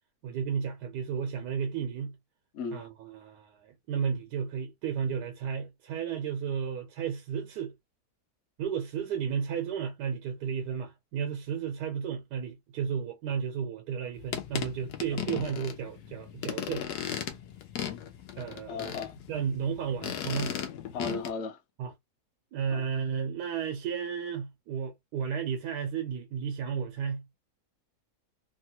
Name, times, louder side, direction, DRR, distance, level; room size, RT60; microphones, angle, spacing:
voice 1, 0.2-2.2 2.7-7.7 8.6-16.8 18.4-18.9 19.3-20.6 21.8-21.9 22.5-27.2, right 7 dB, 90° right, 1.2 m, -33 dB
sound 1, 14.2-21.3, left 9 dB, 90° left, 1.2 m, -37 dB
voice 2, 18.7-19.2 20.9-21.6 22.7-22.8, left 4 dB, 60° left, 0.8 m, -36 dB
3.2 x 2.3 x 2.8 m
omnidirectional pair, 1.7 m